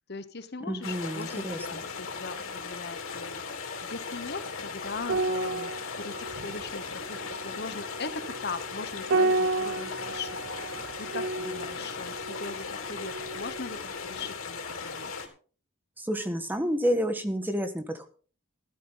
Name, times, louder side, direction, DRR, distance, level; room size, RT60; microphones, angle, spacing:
voice 1, 0.1-15.1, left 4 dB, 50° left, 12 dB, 1.1 m, -40 dB
voice 2, 0.7-1.8 16.0-18.1, equal, 10° right, 8 dB, 1.4 m, -29 dB
sound 1, 0.8-15.3, left 5 dB, 75° left, 3.5 m, -38 dB
sound 2, 5.0-13.8 14.1-14.3, right 3 dB, 65° right, 0.5 m, -32 dB
14.5 x 13.0 x 3.9 m, 0.40 s
head